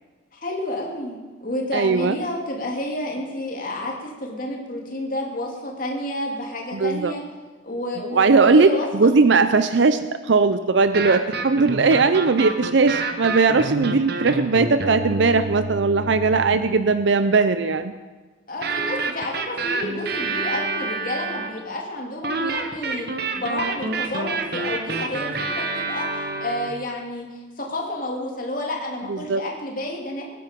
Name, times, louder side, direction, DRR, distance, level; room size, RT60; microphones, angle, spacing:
voice 1, 0.3-7.2 7.6-8.9 18.5-23.1 23.3-30.3, left 1 dB, 45° left, 0 dB, 2.7 m, -30 dB
voice 2, 1.7-2.1 6.7-7.1 8.1-17.9 29.1-29.4, right 4 dB, 70° right, 11 dB, 0.5 m, -19 dB
sound 1, 10.8-16.7 18.6-21.6 22.2-26.7, right 3 dB, 55° right, 1.2 m, -28 dB
20.0 x 11.0 x 5.2 m, 1.3 s
head